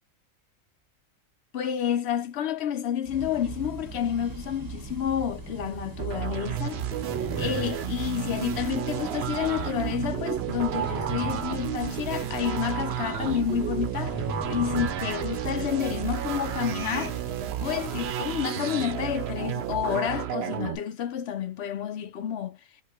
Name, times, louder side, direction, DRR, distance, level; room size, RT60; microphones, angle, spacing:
voice 1, 1.5-6.8 7.4-14.2 14.5-17.2 17.6-22.6, left 9 dB, 55° left, 0.9 m, -29 dB
sound 1, 3.1-18.1, right 3 dB, 20° right, 0.7 m, -38 dB
sound 2, 6.0-20.8, right 10 dB, 60° right, 0.8 m, -32 dB
5.0 x 2.2 x 4.5 m
omnidirectional pair, 1.4 m